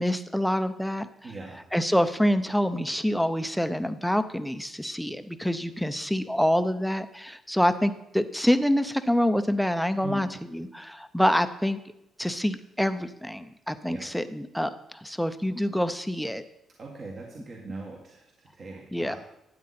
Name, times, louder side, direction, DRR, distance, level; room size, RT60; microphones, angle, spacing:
voice 1, 0.0-1.1 1.7-10.3 10.5-11.8 12.2-16.4 18.9-19.2, equal, ahead, 11 dB, 0.7 m, -26 dB
voice 2, 1.2-1.6 10.0-10.3 13.8-14.1 16.8-19.2, right 3 dB, 50° right, -1 dB, 1.9 m, -41 dB
12.5 x 8.6 x 4.3 m, 0.82 s
cardioid pair, 90°, 0 cm